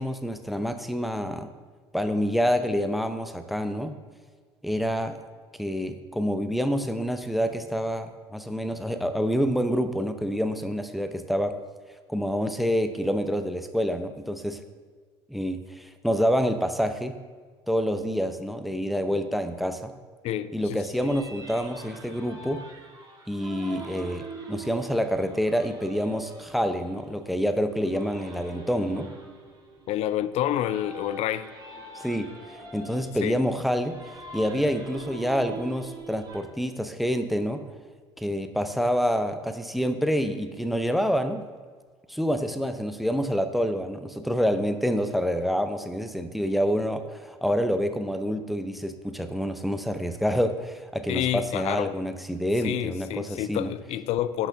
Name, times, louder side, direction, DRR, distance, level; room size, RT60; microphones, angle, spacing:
voice 1, 0.0-1.5 1.9-4.0 4.6-5.2 5.6-11.5 12.1-14.6 15.3-17.2 17.7-19.9 20.5-22.6 23.3-29.1 31.9-37.7 38.2-41.4 42.1-53.7, equal, ahead, 0.7 m, -27 dB
voice 2, 20.2-21.1 29.9-31.5 33.2-33.4 51.1-52.0 52.6-54.5, left 12 dB, 45° left, 0.5 m, -29 dB
sound 1, 20.9-36.4, right 3 dB, 25° right, 2.6 m, -44 dB
17.0 x 6.0 x 3.4 m
figure-of-eight pair, 65°, 15 cm